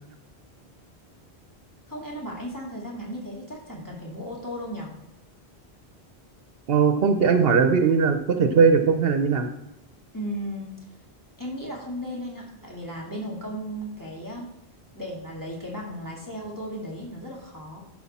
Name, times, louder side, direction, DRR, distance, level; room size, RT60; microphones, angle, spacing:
voice 1, 1.9-4.9 10.1-10.8 11.4-14.5 14.9-17.8, equal, 20° left, -3 dB, 2.0 m, -35 dB
voice 2, 6.7-9.5, right 5 dB, 65° right, 7 dB, 0.9 m, -19 dB
11.5 x 4.6 x 4.1 m, 0.86 s
omnidirectional pair, 1.1 m